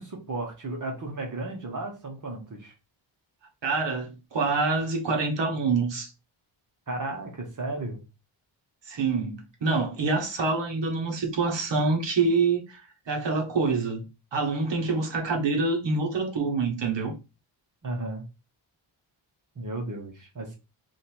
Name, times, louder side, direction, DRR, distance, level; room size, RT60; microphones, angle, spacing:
voice 1, 0.0-2.7 6.9-8.0 17.8-18.2 19.5-20.6, right 2 dB, 40° right, 1.4 m, -34 dB
voice 2, 3.6-6.1 8.9-14.0 14.3-17.1, right 4 dB, 60° right, 1.3 m, -26 dB
3.6 x 2.9 x 4.5 m
wide cardioid pair, 170°, 49 cm